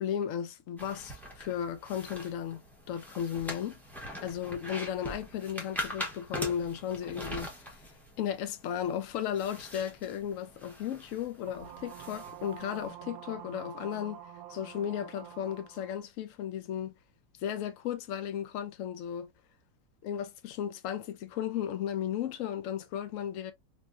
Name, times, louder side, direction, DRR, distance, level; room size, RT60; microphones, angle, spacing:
voice 1, 0.0-2.6 2.9-3.8 4.2-7.8 8.2-14.2 14.5-16.9 17.4-19.3 20.0-23.5, left 9 dB, 80° left, 0.7 m, -35 dB
sound 1, 0.8-12.9, equal, ahead, 0.4 m, -43 dB
sound 2, 11.5-16.0, right 11 dB, 90° right, 1.3 m, -47 dB
3.5 x 3.1 x 2.4 m
omnidirectional pair, 2.0 m